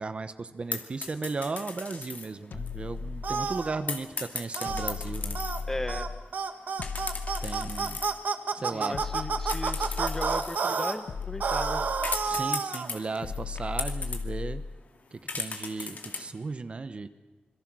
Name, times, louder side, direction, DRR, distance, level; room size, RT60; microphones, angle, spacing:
voice 1, 0.0-5.4 7.4-8.1 8.5-9.0 12.2-14.6 15.1-17.1, right 3 dB, 40° right, 10 dB, 1.0 m, -35 dB
sound 1, 0.7-2.3 2.7-2.8 3.9-5.6 6.8-8.2 8.7-9.2 9.5-14.2 14.9-15.0 15.3-16.3, left 4 dB, 60° left, 2.4 m, -37 dB
sound 2, 2.5-3.8 4.7-6.3 6.8-8.2 8.9-10.5 11.1-12.5 13.2-14.8, left 4 dB, 75° left, 1.2 m, -36 dB
sound 3, 3.2-3.8 4.6-4.9 5.3-5.6 5.9-6.1 6.3-10.9 11.4-12.9, right 5 dB, 65° right, 1.6 m, -30 dB
voice 2, 5.7-6.1 8.7-11.8, left 1 dB, 15° left, 9 dB, 1.4 m, -36 dB
26.5 x 22.5 x 6.2 m, 1.2 s
wide cardioid pair, 130°, 3 cm